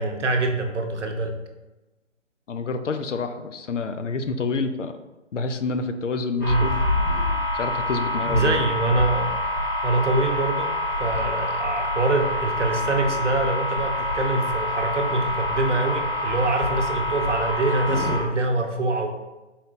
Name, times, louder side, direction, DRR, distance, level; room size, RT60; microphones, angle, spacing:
voice 1, 0.0-1.4 6.4-6.7 8.2-9.3 9.8-10.7 11.0-19.1, right 2 dB, 70° right, 4 dB, 0.7 m, -24 dB
voice 2, 2.5-5.0 5.3-6.8 7.5-8.6, left 4 dB, 75° left, 8 dB, 0.5 m, -28 dB
sound 1, 6.4-18.2, left 1 dB, 10° left, 1.0 m, -26 dB
4.4 x 2.3 x 3.6 m, 1.1 s
figure-of-eight pair, 145°, 37 cm